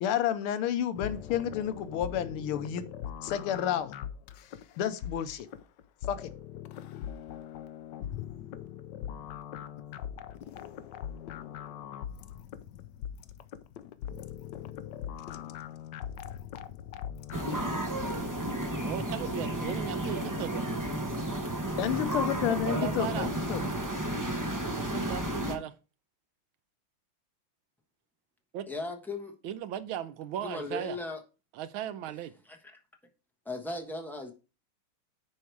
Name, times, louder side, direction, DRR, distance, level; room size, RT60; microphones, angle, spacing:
voice 1, 0.0-2.8 3.2-3.9 4.8-5.5 6.1-6.3 21.8-23.6, left 10 dB, 90° left, 1.7 m, -30 dB
sound 1, 1.0-17.8, left 9 dB, 70° left, 1.0 m, -41 dB
sound 2, 17.3-25.6, right 1 dB, 25° right, 0.4 m, -32 dB
voice 2, 18.8-20.7 22.5-23.3 24.7-25.7 28.5-28.7 29.4-31.0 31.5-32.3, right 10 dB, 75° right, 1.5 m, -37 dB
voice 3, 28.7-29.3 30.4-31.2 32.4-32.8 33.4-34.3, left 2 dB, ahead, 0.7 m, -37 dB
9.8 x 4.9 x 4.6 m
omnidirectional pair, 2.3 m